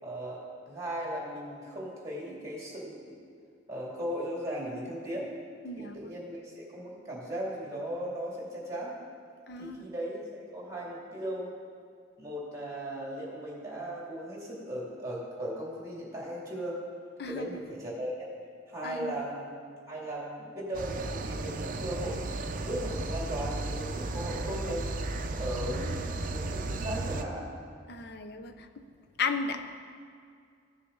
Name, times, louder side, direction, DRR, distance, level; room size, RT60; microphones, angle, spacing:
voice 1, 0.0-3.2 3.7-5.3 5.8-8.9 9.6-11.5 12.2-16.8 17.3-18.1 18.7-19.5 19.9-22.4 22.6-24.9 25.4-27.5, equal, 15° right, -5 dB, 2.7 m, -37 dB
voice 2, 5.6-6.0 9.5-9.8 17.2-17.5 18.8-19.2 27.9-28.7 29.2-29.7, left 4 dB, 60° left, 8 dB, 0.6 m, -34 dB
sound 1, 20.7-27.2, right 2 dB, 45° right, 0.6 m, -34 dB
15.5 x 6.9 x 3.8 m, 2.2 s
head